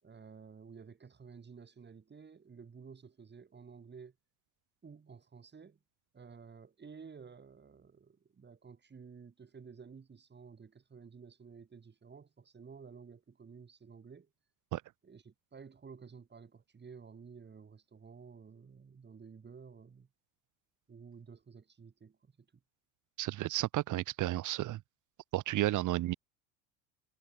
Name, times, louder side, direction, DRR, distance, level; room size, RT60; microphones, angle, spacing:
voice 1, 0.0-4.1 4.8-5.8 6.1-14.3 15.0-20.1 20.9-22.5, right 5 dB, 25° right, 7.5 m, -53 dB
voice 2, 23.2-24.8 25.3-26.1, right 15 dB, 50° right, 1.6 m, -32 dB
hypercardioid pair, 85°, 40 cm